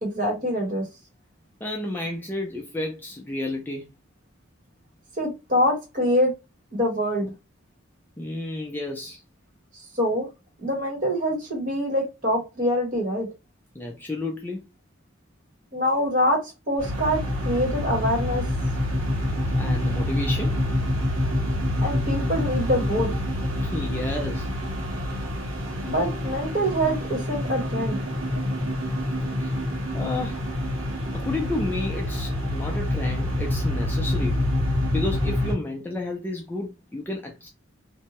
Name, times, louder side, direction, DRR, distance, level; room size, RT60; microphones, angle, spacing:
voice 1, 0.0-0.9 5.2-6.3 6.7-7.3 10.0-10.3 10.6-13.3 15.7-18.5 21.8-23.1 25.8-28.0, equal, 40° right, 1.2 m, -25 dB
voice 2, 1.6-3.9 8.2-9.2 13.7-14.6 19.6-20.6 23.6-24.5 29.4-29.5 29.9-30.4 31.1-34.4 34.9-37.5, left 2 dB, 10° left, 0.4 m, -31 dB
sound 1, 16.8-35.5, left 1 dB, 85° right, 1.2 m, -27 dB
2.6 x 2.2 x 2.9 m
head